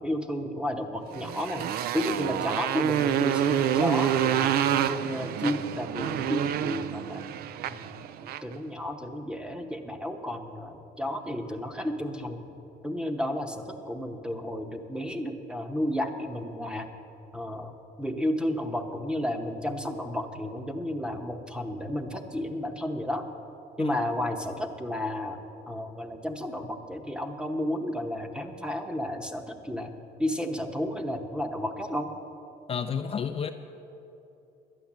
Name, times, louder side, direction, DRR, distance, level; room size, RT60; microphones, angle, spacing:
voice 1, 0.0-1.7 1.9-4.5 4.8-7.2 7.7-7.9 8.2-12.4 12.8-16.9 17.3-23.3 23.8-25.4 25.7-29.9 30.2-32.1, left 1 dB, 5° right, 6 dB, 0.9 m, -32 dB
Motorcycle, 1.1-8.5, right 10 dB, 65° right, 0.4 m, -28 dB
voice 2, 32.7-33.5, left 7 dB, 35° left, 6 dB, 0.5 m, -30 dB
12.0 x 9.1 x 7.3 m, 2.9 s
cardioid pair, 110°, 17 cm